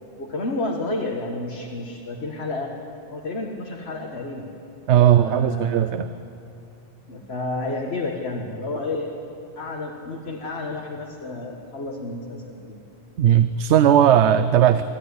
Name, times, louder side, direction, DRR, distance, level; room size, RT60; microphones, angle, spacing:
voice 1, 0.2-2.7 3.1-4.5 5.0-5.9 7.1-9.1 9.6-12.8, left 2 dB, 65° left, 0 dB, 1.8 m, -31 dB
voice 2, 4.9-6.1 13.2-14.8, right 10 dB, 80° right, 12 dB, 0.9 m, -17 dB
24.5 x 14.0 x 9.7 m, 2.8 s
omnidirectional pair, 1.2 m